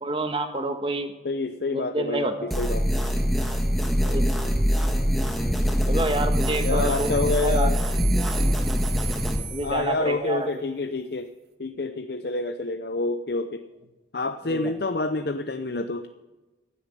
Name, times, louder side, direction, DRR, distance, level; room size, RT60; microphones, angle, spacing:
voice 1, 0.0-1.1 1.7-2.5 4.0-4.2 5.8-7.1 7.4-7.8 9.5-10.5 14.4-14.7, right 2 dB, 30° right, 7 dB, 1.5 m, -28 dB
voice 2, 1.2-2.9 6.6-7.8 9.6-11.3 11.6-13.7 14.1-16.1, left 3 dB, 60° left, 8 dB, 0.6 m, -28 dB
sound 1, 2.5-9.4, equal, ahead, 1.8 m, -23 dB
sound 2, 6.3-10.3, right 7 dB, 60° right, 1.9 m, -38 dB
16.0 x 8.7 x 9.9 m, 1.1 s
head